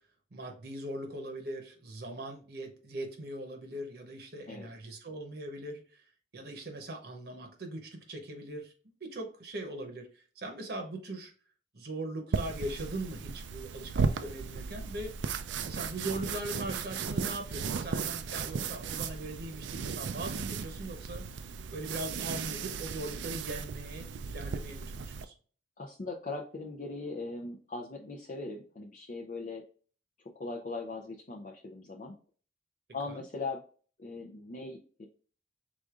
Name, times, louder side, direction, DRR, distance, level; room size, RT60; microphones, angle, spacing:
voice 1, 0.3-6.0 6.3-8.7 9.0-11.3 11.7-15.1 15.6-21.3 21.7-25.3 33.1-33.2, right 1 dB, 60° right, 0.9 m, -40 dB
sound 1, 12.3-25.3, right 5 dB, 85° right, 0.4 m, -36 dB
voice 2, 25.8-29.6 30.4-32.1 32.9-33.6 34.0-35.1, left 3 dB, 45° left, 0.5 m, -40 dB
5.0 x 3.6 x 2.4 m
head